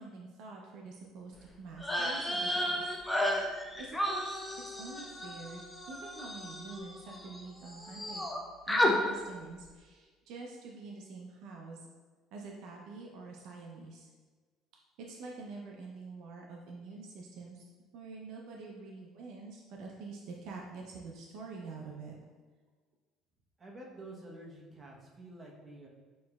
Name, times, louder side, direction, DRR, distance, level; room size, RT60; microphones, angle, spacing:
voice 1, 0.0-2.9 3.8-8.3 8.7-11.9 12.3-14.1 15.0-17.6 17.9-22.1, right 3 dB, 75° right, 0 dB, 0.5 m, -46 dB
sound 1, 1.8-7.4 7.7-8.4 8.7-8.9, left 1 dB, 10° left, 0.6 m, -33 dB
voice 2, 23.6-25.9, right 1 dB, 30° right, -2 dB, 0.9 m, -49 dB
6.2 x 2.9 x 2.3 m, 1.4 s
cardioid pair, 100°, 0 cm